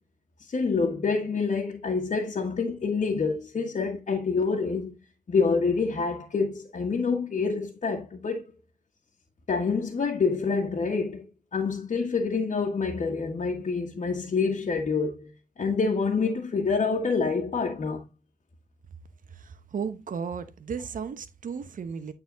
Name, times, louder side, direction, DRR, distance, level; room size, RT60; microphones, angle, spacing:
voice 1, 0.5-4.9 5.3-8.4 9.5-11.3 11.5-15.3 15.6-18.0, left 4 dB, 55° left, 1.6 m, -27 dB
voice 2, 19.3-22.1, right 6 dB, 70° right, 1.1 m, -35 dB
9.1 x 4.1 x 3.9 m
cardioid pair, 50°, 14 cm